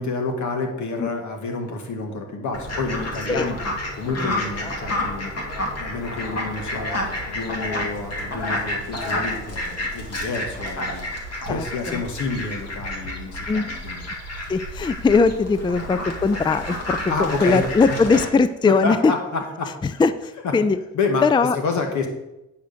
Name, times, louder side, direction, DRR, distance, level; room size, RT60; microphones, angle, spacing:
voice 1, 0.0-3.6 3.9-5.3 5.8-11.1 11.5-14.0 17.1-17.6 18.6-20.0 20.4-20.5 20.9-21.3 21.5-22.1, left 3 dB, 75° left, 4 dB, 2.1 m, -28 dB
Fowl, 2.5-18.2, left 1 dB, 55° left, 2.4 m, -30 dB
voice 2, 11.4-12.0 13.5-13.7 14.5-17.0 17.4-19.1 19.8-20.8 21.2-21.6, left 4 dB, 15° left, 13 dB, 0.4 m, -20 dB
9.1 x 5.1 x 6.9 m, 0.93 s
cardioid pair, 90°, 30 cm